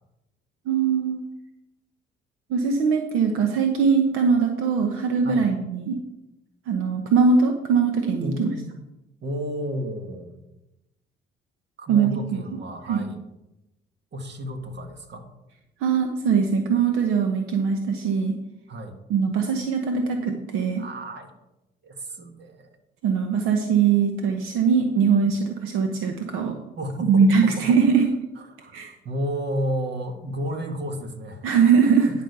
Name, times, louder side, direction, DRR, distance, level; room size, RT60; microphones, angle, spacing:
voice 1, 0.7-1.2 2.5-6.0 6.7-8.5 11.9-12.2 12.9-13.0 15.8-18.4 19.1-20.8 23.0-26.5 27.0-28.1 28.7-28.9 31.4-32.1, right 6 dB, 80° right, 4 dB, 0.9 m, -21 dB
voice 2, 8.2-8.8 9.2-10.4 11.8-13.2 14.1-15.3 18.7-18.9 20.8-21.3 21.8-22.7 26.8-27.8 28.4-31.5, equal, 55° right, 6 dB, 1.7 m, -32 dB
10.0 x 5.2 x 6.7 m, 0.95 s
supercardioid pair, 60°, 21 cm